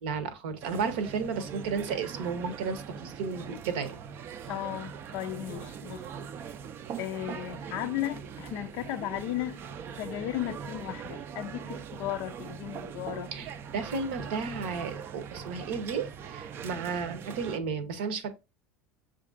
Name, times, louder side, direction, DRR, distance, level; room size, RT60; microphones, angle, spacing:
voice 1, 0.0-4.0 13.3-18.3, right 5 dB, 70° right, 0.8 m, -33 dB
sound 1, 0.6-17.6, right 7 dB, 45° right, 0.4 m, -41 dB
voice 2, 4.5-6.1 7.0-9.6 10.0-13.3, left 14 dB, 60° left, 0.4 m, -35 dB
7.0 x 2.5 x 2.5 m
hypercardioid pair, 75°, 6 cm